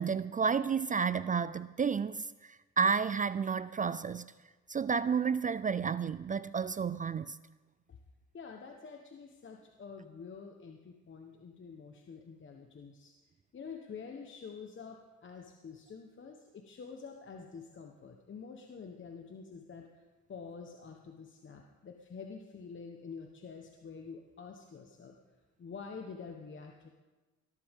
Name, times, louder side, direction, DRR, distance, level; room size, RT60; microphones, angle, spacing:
voice 1, 0.0-2.3 2.8-4.3 4.7-7.4, right 6 dB, 25° right, 0.3 m, -31 dB
voice 2, 8.3-13.1 13.5-19.9 20.3-25.1 25.6-26.9, left 5 dB, 40° left, 1.2 m, -47 dB
19.0 x 13.0 x 3.7 m
cardioid pair, 90°, 30 cm